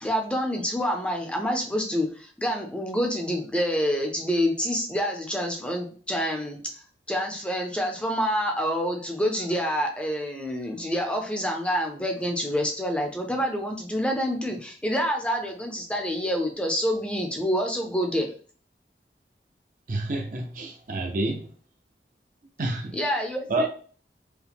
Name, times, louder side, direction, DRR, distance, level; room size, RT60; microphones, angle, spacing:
voice 1, 0.0-6.6 7.1-18.3 22.9-23.7, equal, 5° left, 2 dB, 0.5 m, -27 dB
voice 2, 19.9-21.5 22.6-23.0 23.5-23.7, right 2 dB, 50° right, 3 dB, 0.5 m, -28 dB
4.7 x 2.1 x 3.5 m, 0.42 s
head